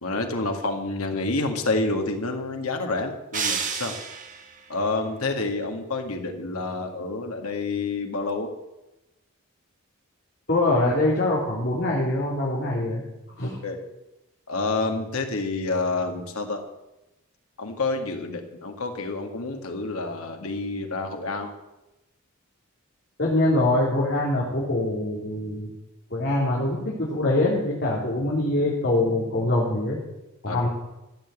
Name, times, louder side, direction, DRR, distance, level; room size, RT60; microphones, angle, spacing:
voice 1, 0.0-3.9 4.7-8.5 13.4-13.8 14.5-16.6 17.6-21.5 30.5-30.7, left 3 dB, 85° left, 4 dB, 2.0 m, -28 dB
sound 1, 3.3-4.6, right 6 dB, 35° right, 1.5 m, -29 dB
voice 2, 10.5-13.0 13.4-13.6 23.2-25.7 26.1-30.0 30.4-30.7, left 1 dB, 50° left, -5 dB, 3.1 m, -24 dB
14.0 x 7.3 x 8.3 m, 0.96 s
head